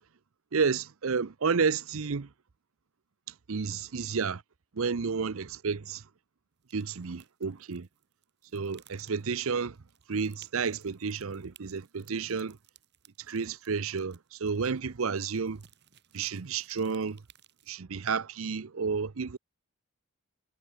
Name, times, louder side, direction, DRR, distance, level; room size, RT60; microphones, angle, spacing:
voice 1, 0.5-2.3 3.5-4.4 4.7-6.0 6.7-7.9 8.5-9.8 10.1-12.6 13.3-15.6 16.1-17.2 17.7-19.4, right 5 dB, 75° right, 0.7 m, -31 dB
sound 1, 6.6-17.8, right 9 dB, 55° right, 6.1 m, -61 dB
head